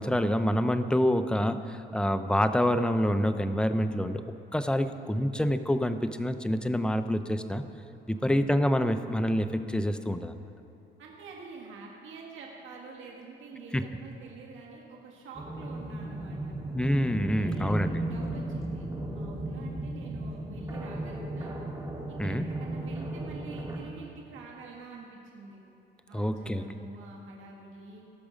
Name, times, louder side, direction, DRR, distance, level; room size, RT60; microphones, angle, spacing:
voice 1, 0.0-4.2 4.5-7.6 8.1-10.3 13.7-13.8 16.7-18.0 22.2-22.5 26.1-26.6, equal, 5° left, 9 dB, 0.6 m, -27 dB
voice 2, 8.1-8.5 11.0-16.5 17.2-21.6 22.1-25.6 26.1-28.1, right 4 dB, 80° right, -2 dB, 1.7 m, -46 dB
sound 1, 15.3-23.8, right 1 dB, 15° right, 1.9 m, -35 dB
18.0 x 6.1 x 5.1 m, 2.9 s
cardioid pair, 90°, 20 cm